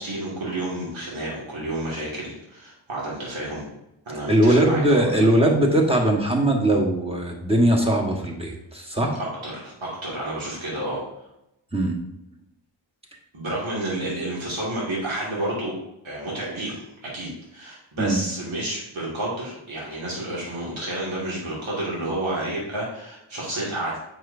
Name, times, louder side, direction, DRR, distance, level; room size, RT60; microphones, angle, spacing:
voice 1, 0.0-3.6 4.1-5.0 9.2-11.0 13.3-15.8 16.0-24.0, right 1 dB, 75° right, -5 dB, 2.3 m, -30 dB
voice 2, 4.3-9.2 11.7-12.0 18.0-18.2, right 1 dB, 10° right, -1 dB, 1.4 m, -20 dB
7.7 x 5.8 x 2.7 m, 0.87 s
wide cardioid pair, 90°, 47 cm